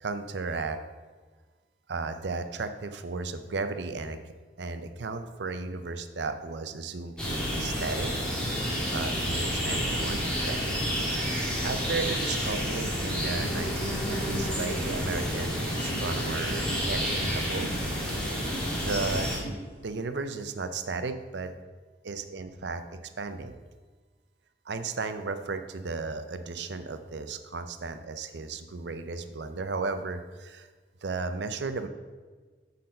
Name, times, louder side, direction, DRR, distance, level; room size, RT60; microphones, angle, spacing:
voice 1, 0.0-0.8 1.9-8.1 8.9-10.8 11.2-17.7 18.0-19.3 19.8-21.5 22.0-23.6 24.7-30.7 31.0-31.9, right 3 dB, 80° right, 9 dB, 0.6 m, -35 dB
sound 1, 7.2-19.4, equal, 5° left, 1.6 m, -30 dB
sound 2, 14.8-15.0 15.8-15.9 16.7-16.8 17.6-17.7 18.5-18.7 19.4-19.6, right 2 dB, 35° left, 2.1 m, -40 dB
8.4 x 4.1 x 5.2 m, 1.4 s
head